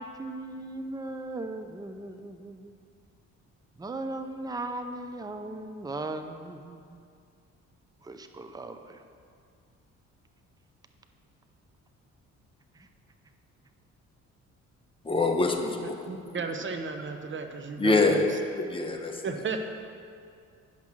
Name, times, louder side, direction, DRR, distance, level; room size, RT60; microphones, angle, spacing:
voice 1, 0.0-2.7 3.8-7.0 8.0-9.0 12.7-12.9, right 2 dB, 15° right, 7 dB, 0.6 m, -38 dB
voice 2, 15.0-16.0 17.8-18.2 18.6-19.2, left 3 dB, 15° left, 2 dB, 1.1 m, -25 dB
voice 3, 15.8-18.2 19.2-19.6, right 4 dB, 40° right, 5 dB, 1.0 m, -34 dB
10.5 x 5.6 x 6.3 m, 2.3 s
cardioid pair, 90°, 30 cm